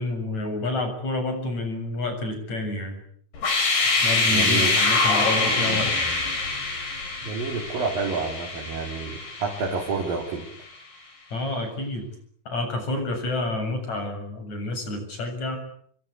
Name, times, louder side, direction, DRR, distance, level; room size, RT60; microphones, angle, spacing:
voice 1, 0.0-3.0 4.0-5.9 11.3-12.1 12.5-15.6, left 2 dB, 45° left, 5 dB, 8.8 m, -29 dB
sound 1, 3.3-10.2, left 3 dB, 80° left, 8.2 m, -24 dB
voice 2, 4.3-4.8 7.2-10.5, right 4 dB, 60° right, -1 dB, 5.4 m, -29 dB
28.0 x 23.5 x 8.7 m, 0.63 s
omnidirectional pair, 4.5 m